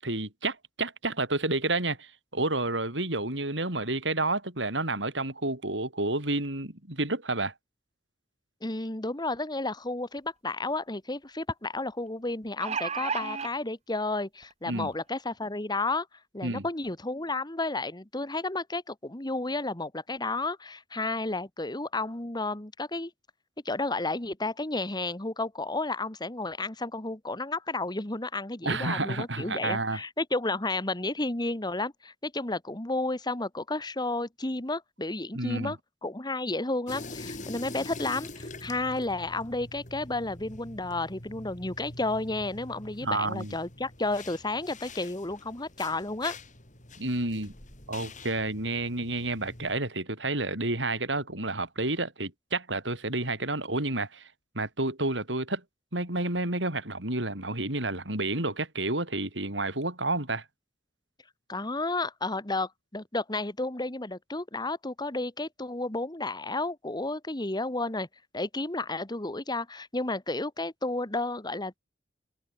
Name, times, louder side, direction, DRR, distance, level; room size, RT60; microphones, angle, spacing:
voice 1, 0.0-7.5 14.7-14.9 16.4-16.7 28.6-30.0 35.3-35.7 43.0-43.5 47.0-47.5 47.9-54.3 54.5-55.6 55.9-60.4, right 2 dB, 85° right, 7.8 m, -30 dB
voice 2, 8.6-16.1 16.3-23.1 23.7-35.8 36.0-46.3 61.5-68.1 68.3-71.8, left 2 dB, 25° left, 1.9 m, -32 dB
sound 1, 10.2-10.3 10.6-10.7 12.3-13.5 14.4-14.5 14.9-15.0, right 6 dB, 35° right, 1.1 m, -32 dB
sound 2, 36.9-49.8, left 2 dB, 45° left, 7.3 m, -45 dB
head